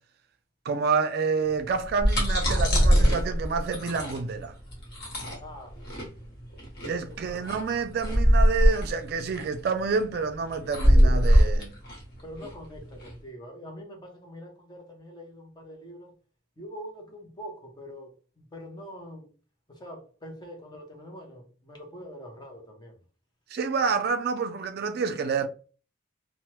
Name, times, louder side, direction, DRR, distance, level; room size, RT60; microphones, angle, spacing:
voice 1, 0.7-4.5 6.8-11.7 23.5-25.5, right 5 dB, 50° right, 0.3 m, -28 dB
sound 1, 1.8-13.1, equal, 50° left, 1.1 m, -23 dB
voice 2, 5.4-6.3 6.8-7.5 10.9-11.3 12.2-16.2 16.6-19.3 19.7-23.0, equal, 20° left, 0.6 m, -44 dB
2.9 x 2.1 x 3.0 m
head